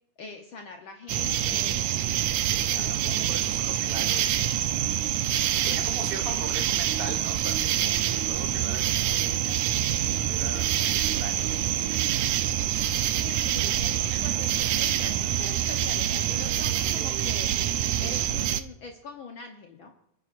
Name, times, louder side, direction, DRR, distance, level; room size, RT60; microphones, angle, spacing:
voice 1, 0.2-1.9 2.8-3.3 5.6-6.4 13.1-19.9, left 4 dB, 85° left, 3 dB, 1.1 m, -43 dB
sound 1, 1.1-18.6, right 11 dB, 75° right, 1.9 m, -26 dB
voice 2, 2.4-4.6 5.6-9.8 10.3-11.5 14.1-14.3 16.7-17.0, right 4 dB, 25° right, 2 dB, 1.3 m, -41 dB
28.5 x 9.8 x 2.5 m, 0.85 s
omnidirectional pair, 3.7 m